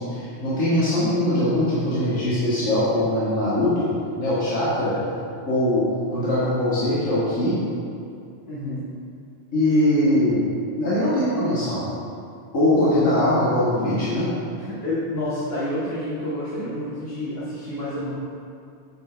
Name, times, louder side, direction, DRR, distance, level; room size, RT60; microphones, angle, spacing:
voice 1, 0.1-3.9 4.2-5.0 5.5-5.8 6.1-7.6 9.5-10.4 10.8-11.8 12.5-14.3, left 1 dB, 90° left, -11 dB, 2.2 m, -21 dB
voice 2, 8.5-8.8 14.6-18.1, left 1 dB, 55° left, -10 dB, 1.7 m, -29 dB
8.9 x 7.5 x 3.3 m, 2.5 s
omnidirectional pair, 1.3 m